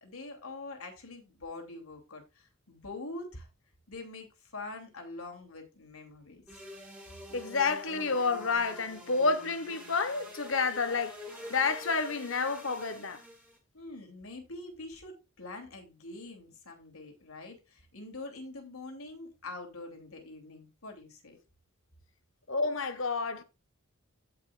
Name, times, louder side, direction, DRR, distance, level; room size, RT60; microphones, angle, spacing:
voice 1, 0.0-3.5 3.9-6.6 13.7-21.4, left 2 dB, 85° left, 3.0 m, -45 dB
sound 1, 6.5-13.6, left 1 dB, 5° right, 3.0 m, -47 dB
voice 2, 7.3-11.2 11.5-13.2 22.5-23.4, left 4 dB, 65° left, 1.1 m, -29 dB
16.5 x 5.6 x 2.4 m
head